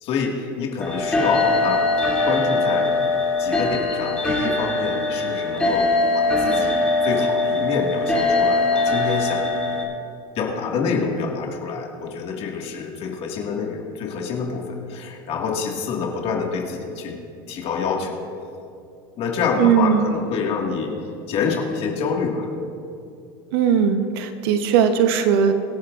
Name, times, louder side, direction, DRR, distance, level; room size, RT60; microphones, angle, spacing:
voice 1, 0.0-3.0 3.4-9.5 10.4-17.2 17.5-18.2 19.2-20.9 21.3-22.5, left 5 dB, 50° left, 0 dB, 1.9 m, -27 dB
sound 1, 0.8-9.8, left 3 dB, 10° left, 2.7 m, -21 dB
voice 2, 19.6-20.1 23.5-25.5, right 7 dB, 75° right, 8 dB, 1.0 m, -18 dB
24.5 x 8.4 x 2.5 m, 2.6 s
supercardioid pair, 110°, 13 cm